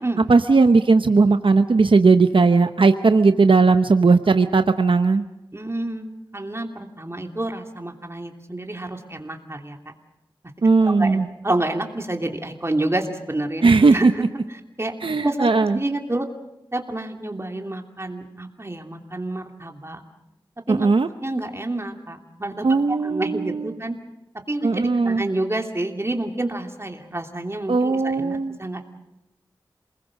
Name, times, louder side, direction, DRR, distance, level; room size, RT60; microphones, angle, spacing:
voice 1, 0.3-5.2 10.6-11.3 13.6-14.1 15.0-15.8 20.7-21.1 22.6-23.8 24.6-25.3 27.7-28.6, right 4 dB, 80° right, 8 dB, 0.8 m, -17 dB
voice 2, 5.5-9.8 10.8-13.6 13.9-14.3 14.8-14.9 15.2-16.3 16.7-20.0 20.7-20.9 21.2-22.6 23.0-24.0 24.5-28.8, right 2 dB, 30° right, 3 dB, 2.9 m, -28 dB
28.0 x 20.5 x 6.5 m, 0.91 s
wide cardioid pair, 60°, 9 cm